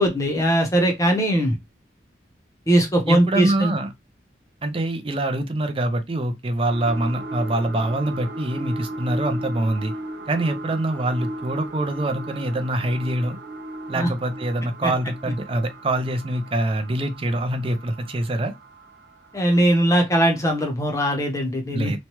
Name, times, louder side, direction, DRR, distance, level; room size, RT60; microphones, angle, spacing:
voice 1, 0.0-1.6 2.7-3.7 13.9-14.1 14.8-14.9 19.3-21.9, right 1 dB, 15° left, 0.7 m, -20 dB
voice 2, 3.1-3.9 4.6-9.9 10.3-13.4 13.9-18.5 21.7-22.0, right 1 dB, 30° right, 0.4 m, -25 dB
sound 1, 6.7-19.9 20.3-20.4, right 1 dB, 65° right, 1.1 m, -36 dB
3.0 x 2.2 x 2.9 m
head